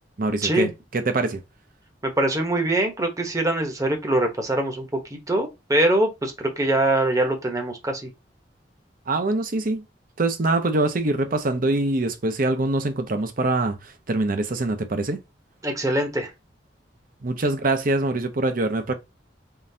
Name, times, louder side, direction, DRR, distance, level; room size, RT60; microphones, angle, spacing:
voice 1, 0.2-1.4 9.1-9.8 10.2-15.2 17.2-18.9, right 2 dB, 50° right, 0.7 m, -24 dB
voice 2, 2.0-8.1 15.6-16.3, right 1 dB, 20° right, 1.0 m, -23 dB
3.8 x 3.6 x 2.7 m
head